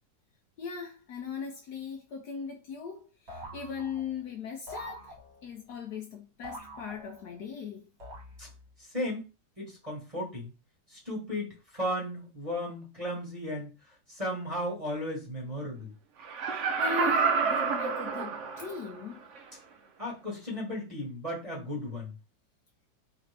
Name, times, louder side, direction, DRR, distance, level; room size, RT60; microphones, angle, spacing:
voice 1, 0.6-5.1 5.4-7.9 16.4-19.2, left 6 dB, 65° left, 1.1 m, -39 dB
boing sounds, 3.3-4.2 4.7-5.6 6.4-7.5 8.0-8.7, right 1 dB, 40° right, 1.4 m, -45 dB
voice 2, 9.6-10.5 10.9-13.7 14.1-15.9 20.0-22.1, left 1 dB, 20° right, 1.4 m, -35 dB
Laughter, 16.2-18.9 19.4-19.5, right 5 dB, 70° right, 0.7 m, -28 dB
3.8 x 3.3 x 3.3 m
omnidirectional pair, 2.1 m